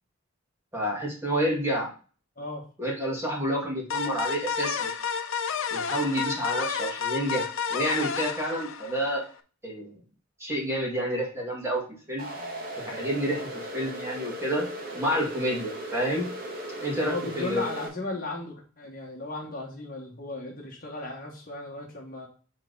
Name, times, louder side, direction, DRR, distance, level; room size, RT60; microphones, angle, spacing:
voice 1, 0.7-1.9 2.8-4.9 5.7-9.2 9.6-10.0 10.4-11.8 12.1-12.3 12.9-13.4 13.7-14.7 14.9-16.3 16.8-17.7, equal, 10° right, -2 dB, 1.9 m, -29 dB
sound 1, 3.9-9.3, left 6 dB, 75° left, 0.6 m, -31 dB
sound 2, 12.2-17.9, right 1 dB, 45° right, 1.5 m, -37 dB
voice 2, 12.3-12.7 13.3-13.5 17.1-22.3, left 2 dB, 40° left, -1 dB, 1.4 m, -36 dB
7.4 x 3.5 x 3.9 m, 0.39 s
head